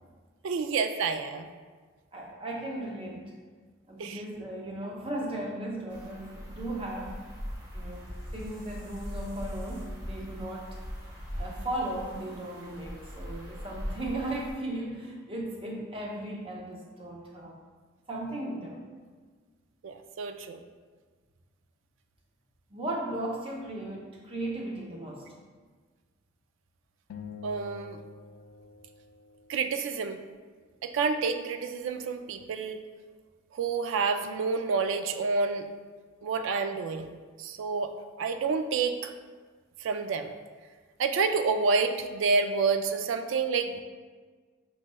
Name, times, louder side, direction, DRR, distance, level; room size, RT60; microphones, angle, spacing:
voice 1, 0.4-1.5 4.0-4.2 19.8-20.6 27.4-28.0 29.5-30.2 30.8-32.8 33.6-35.6 36.2-37.1 37.4-37.9 38.2-39.1 39.8-40.3 41.0-43.8, right 4 dB, 70° right, 7 dB, 0.3 m, -28 dB
voice 2, 2.1-3.3 3.9-7.2 7.7-10.8 11.4-17.6 18.1-18.8 22.7-25.3, right 1 dB, 25° right, -2 dB, 0.6 m, -36 dB
sound 1, 5.9-14.5, equal, 50° right, 1.2 m, -40 dB
sound 2, 27.1-29.7, left 6 dB, 85° left, 0.3 m, -46 dB
6.3 x 3.1 x 2.2 m, 1.5 s
head